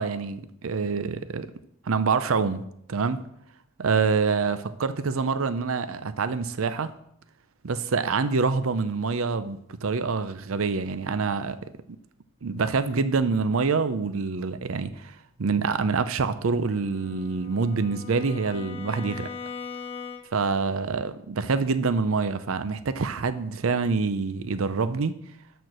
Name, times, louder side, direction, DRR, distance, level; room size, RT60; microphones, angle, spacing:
voice 1, 0.0-1.5 1.9-3.2 3.8-6.9 7.6-11.7 12.4-19.3 20.3-25.1, right 4 dB, 75° right, 0.6 m, -26 dB
Bowed string instrument, 16.7-20.6, left 5 dB, 25° left, 0.8 m, -40 dB
12.5 x 4.4 x 6.6 m
head